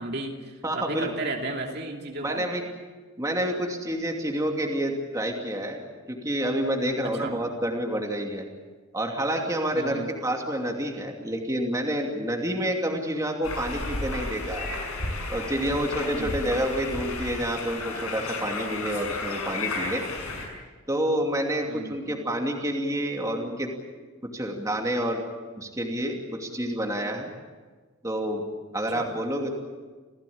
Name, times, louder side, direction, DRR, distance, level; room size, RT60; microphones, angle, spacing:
voice 1, 0.0-2.5 7.0-7.4 9.7-10.1 16.1-16.5 21.7-22.0 28.9-29.1, right 2 dB, 45° right, 1 dB, 2.7 m, -34 dB
voice 2, 0.6-1.1 2.2-2.6 3.2-5.8 6.1-8.4 8.9-14.7 15.3-20.0 20.9-23.7 24.3-25.2 25.6-27.3 28.0-28.4 28.7-29.5, right 1 dB, 15° right, 1 dB, 2.7 m, -28 dB
sound 1, 13.4-20.5, left 2 dB, 90° left, 6.8 m, -33 dB
28.5 x 17.0 x 8.7 m, 1.4 s
head